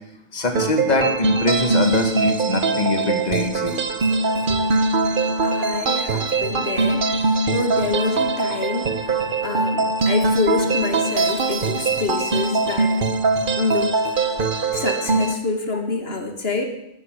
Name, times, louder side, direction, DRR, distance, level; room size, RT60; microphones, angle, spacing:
voice 1, 0.3-3.8 4.5-4.6, left 2 dB, 40° left, 5 dB, 1.9 m, -23 dB
sound 1, 0.6-15.3, right 3 dB, 55° right, 1.2 m, -22 dB
voice 2, 5.4-9.0 9.4-13.0 13.6-14.0 14.5-16.6, left 3 dB, 65° left, 5 dB, 1.9 m, -27 dB
14.0 x 11.5 x 8.3 m, 0.81 s
omnidirectional pair, 1.1 m